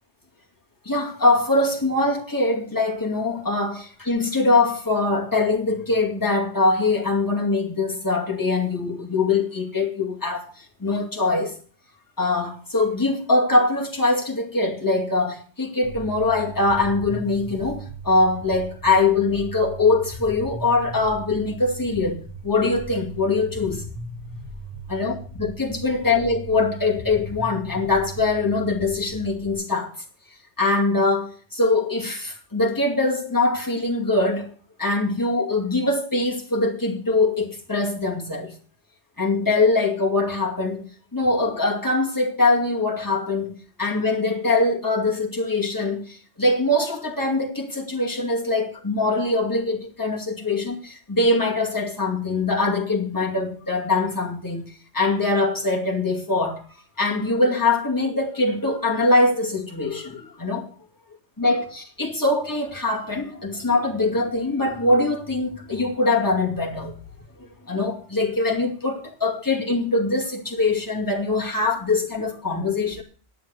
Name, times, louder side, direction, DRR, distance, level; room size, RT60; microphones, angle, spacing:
voice 1, 0.8-11.6 12.2-23.8 24.9-30.0 30.6-34.5 34.8-38.5 39.2-40.9 41.1-56.6 57.0-60.7 61.4-67.0 67.4-73.0, left 2 dB, 15° left, 2.4 m, -23 dB
sound 1, 15.8-29.5, right 2 dB, 75° right, 7.5 m, -38 dB
11.0 x 8.4 x 8.1 m
omnidirectional pair, 1.2 m